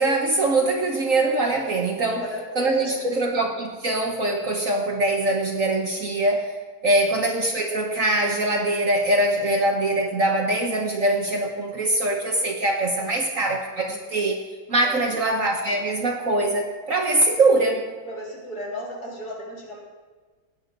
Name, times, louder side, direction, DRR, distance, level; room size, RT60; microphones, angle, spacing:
voice 1, 0.0-2.3 2.5-6.6 6.8-14.4 14.7-17.8, right 2 dB, 50° right, 2 dB, 1.3 m, -23 dB
voice 2, 2.0-3.1 6.8-6.9 12.9-13.2 14.8-15.2 18.0-19.8, left 1 dB, 55° left, -3 dB, 3.2 m, -35 dB
17.0 x 9.3 x 3.9 m, 1.4 s
omnidirectional pair, 2.1 m